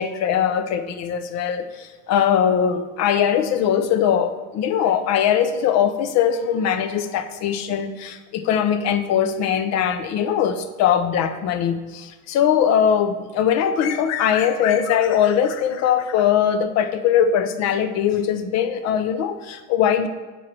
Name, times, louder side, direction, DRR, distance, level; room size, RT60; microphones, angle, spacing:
voice 1, 0.0-20.1, left 8 dB, 40° left, 10 dB, 0.7 m, -21 dB
9.0 x 3.3 x 5.9 m, 1.2 s
supercardioid pair, 125°, 42 cm